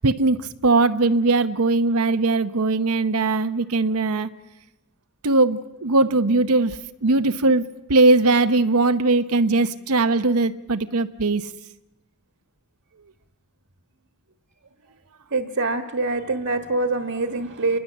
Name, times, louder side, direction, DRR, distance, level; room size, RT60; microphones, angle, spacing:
voice 1, 0.0-4.3 5.2-7.6 7.9-11.5, right 3 dB, 80° right, 0.9 m, -20 dB
voice 2, 15.3-17.8, right 3 dB, 60° right, 1.4 m, -24 dB
29.0 x 21.5 x 7.3 m
head